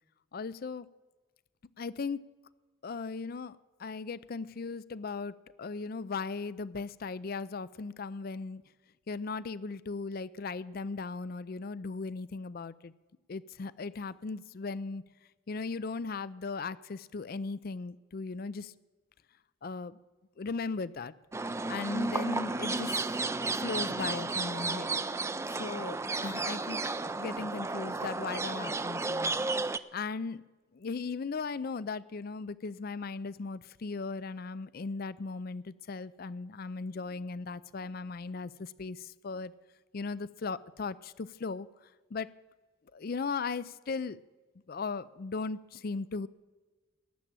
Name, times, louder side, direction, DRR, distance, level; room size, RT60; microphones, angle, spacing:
voice 1, 0.3-0.9 1.8-2.2 2.8-8.6 9.1-12.9 13.3-15.0 15.5-18.7 19.6-20.0 20.4-21.1 21.7-23.0 23.6-24.9 25.5-26.8 27.2-29.3 29.9-30.5 30.7-39.5 39.9-41.7 42.1-42.3 42.9-44.2 44.7-46.3, left 4 dB, 50° left, 17 dB, 0.5 m, -37 dB
sound 1, 21.3-29.8, right 3 dB, 15° right, 0.4 m, -33 dB
18.5 x 7.4 x 8.8 m, 1.3 s
head